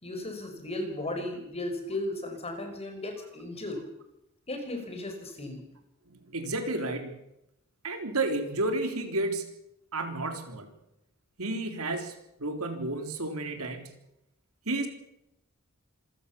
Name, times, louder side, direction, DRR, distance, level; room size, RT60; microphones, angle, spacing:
voice 1, 0.0-3.9 4.5-5.6, left 1 dB, 30° left, 5 dB, 4.9 m, -35 dB
voice 2, 6.1-7.2 7.8-9.5 9.9-10.7 11.4-12.1 12.4-13.9 14.7-14.9, right 2 dB, 90° right, 6 dB, 3.7 m, -31 dB
26.5 x 15.5 x 7.1 m, 0.84 s
head